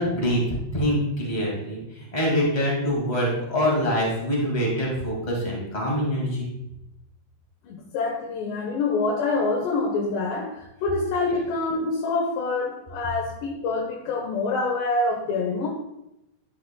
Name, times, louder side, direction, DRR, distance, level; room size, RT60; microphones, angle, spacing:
voice 1, 0.0-6.5, equal, 45° left, -3 dB, 0.5 m, -25 dB
voice 2, 7.6-15.7, left 3 dB, 85° left, -1 dB, 3.1 m, -26 dB
11.5 x 7.4 x 2.3 m, 0.90 s
omnidirectional pair, 4.8 m